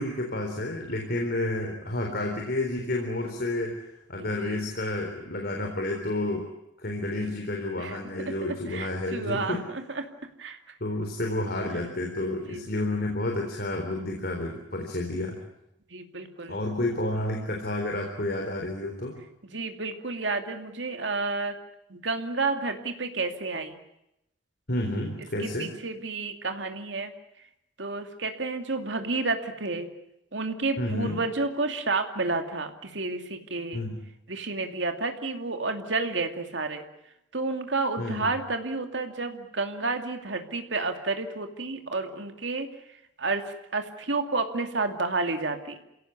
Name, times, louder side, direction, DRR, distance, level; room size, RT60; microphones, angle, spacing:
voice 1, 0.0-6.4 6.8-9.6 10.8-15.4 16.5-19.2 24.7-25.7 30.8-31.2 33.7-34.0 38.0-38.3, left 1 dB, 55° left, 2 dB, 3.9 m, -30 dB
voice 2, 4.2-4.6 7.1-7.4 7.8-10.1 10.4-10.6 12.3-12.7 15.9-16.6 19.5-21.5 21.9-23.8 25.4-27.1 27.8-29.9 30.3-33.8 34.3-36.9 37.3-42.7 43.2-45.8, right 3 dB, 75° right, 6 dB, 2.5 m, -31 dB
29.0 x 17.5 x 9.7 m, 0.84 s
head